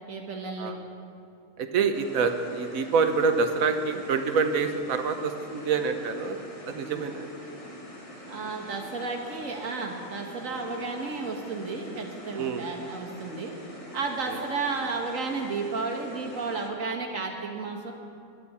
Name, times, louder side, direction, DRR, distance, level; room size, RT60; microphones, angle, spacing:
voice 1, 0.1-0.8 8.3-13.5 13.9-17.9, right 4 dB, 70° right, 1 dB, 2.0 m, -32 dB
voice 2, 1.6-6.4 6.7-7.3 12.3-12.7 14.3-14.4, right 5 dB, 85° right, 7 dB, 1.4 m, -26 dB
sound 1, 1.9-16.7, left 1 dB, 25° left, 1.4 m, -44 dB
22.0 x 11.0 x 4.3 m, 2.5 s
omnidirectional pair, 1.4 m